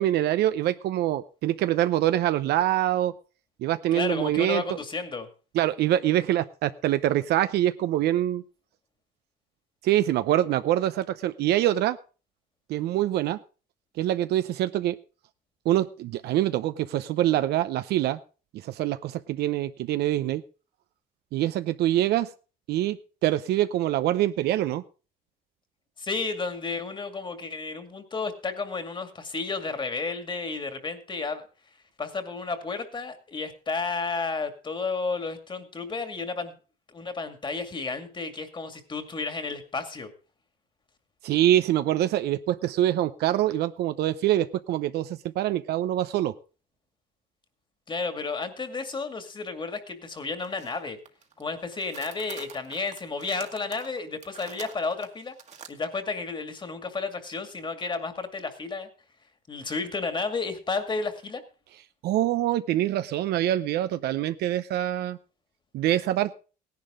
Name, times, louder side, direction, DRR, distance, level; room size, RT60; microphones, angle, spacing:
voice 1, 0.0-3.1 3.6-4.6 5.5-8.4 9.8-12.0 12.7-13.4 14.0-15.0 15.7-18.2 18.6-20.4 21.3-22.3 22.7-23.0 23.2-24.8 41.2-46.3 62.0-65.2 65.7-66.3, right 13 dB, 75° right, 11 dB, 0.7 m, -25 dB
voice 2, 3.9-5.3 26.0-31.5 32.0-36.6 36.9-40.1 47.9-51.0 51.4-55.4 55.7-58.9 59.5-61.4, left 4 dB, 30° left, 8 dB, 2.2 m, -32 dB
sound 1, 50.4-50.8 51.1-51.4 51.7-55.7, right 7 dB, 45° right, 1.7 m, -46 dB
16.5 x 10.5 x 3.7 m, 0.35 s
cardioid pair, 110°, 17 cm